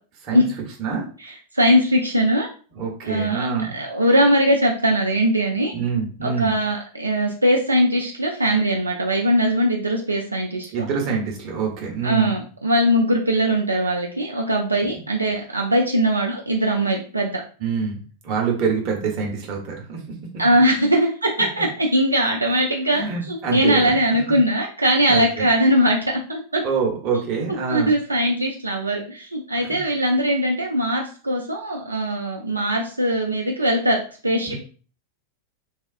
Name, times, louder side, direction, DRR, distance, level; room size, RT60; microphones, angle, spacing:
voice 1, 1.2-2.5 3.0-3.5 3.7-5.7 6.2-10.9 12.0-17.4 20.4-26.6 27.7-34.6, equal, 85° right, 0 dB, 0.3 m, -21 dB
voice 2, 2.7-3.8 5.7-6.5 10.7-12.4 17.6-18.0 18.2-20.0 22.9-23.9 25.1-25.5 26.6-27.9 29.6-29.8 34.5-34.6, right 5 dB, 40° right, 0 dB, 0.8 m, -25 dB
3.4 x 2.3 x 2.4 m, 0.40 s
figure-of-eight pair, 90°, 0 cm